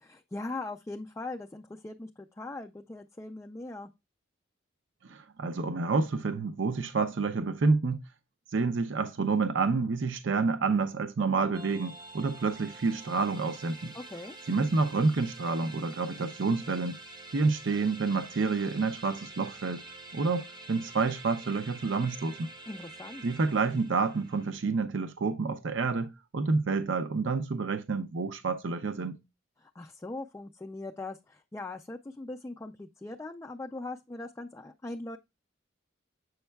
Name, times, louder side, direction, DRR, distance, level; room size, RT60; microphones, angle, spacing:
voice 1, 0.0-3.9 13.9-14.4 22.7-23.3 29.6-35.2, left 2 dB, 15° left, 0.3 m, -40 dB
voice 2, 5.1-8.0 8.5-13.9 14.5-17.0 17.3-19.8 20.1-22.5 23.2-29.2, right 4 dB, 70° right, 0.5 m, -29 dB
sound 1, 11.5-24.6, right 2 dB, 20° right, 0.7 m, -47 dB
7.8 x 5.3 x 2.2 m
head